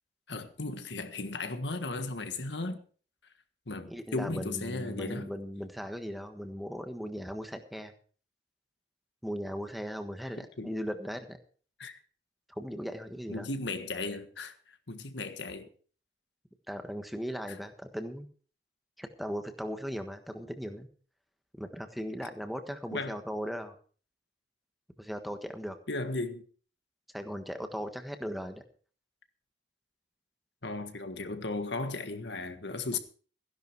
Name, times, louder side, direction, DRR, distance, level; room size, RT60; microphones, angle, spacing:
voice 1, 0.3-2.8 3.7-5.3 10.4-10.7 11.8-12.0 13.3-15.7 17.5-17.6 22.9-23.2 25.9-26.4 30.6-33.0, left 3 dB, 75° left, 1.6 m, -36 dB
voice 2, 3.9-7.9 9.2-11.4 12.5-13.5 16.7-18.3 19.0-20.9 21.5-23.7 25.0-25.8 27.1-28.6 32.9-33.0, equal, ahead, 1.4 m, -38 dB
15.5 x 11.0 x 4.7 m
head